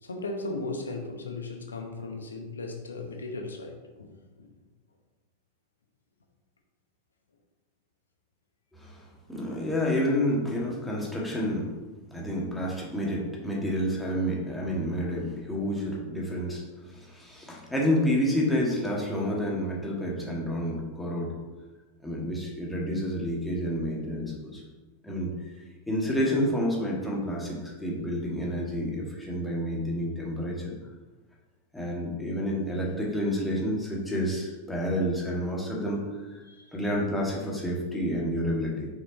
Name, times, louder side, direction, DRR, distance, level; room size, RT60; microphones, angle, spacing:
voice 1, 0.0-4.5 36.5-36.7, left 2 dB, 70° left, 3 dB, 1.0 m, -37 dB
voice 2, 8.7-9.0 9.3-11.7 12.1-21.3 22.0-24.6 25.0-25.3 25.9-30.7 31.7-36.0 36.3-36.4 36.7-38.9, equal, 5° left, -4 dB, 1.7 m, -29 dB
6.0 x 4.9 x 4.1 m, 1.2 s
figure-of-eight pair, 90°, 0 cm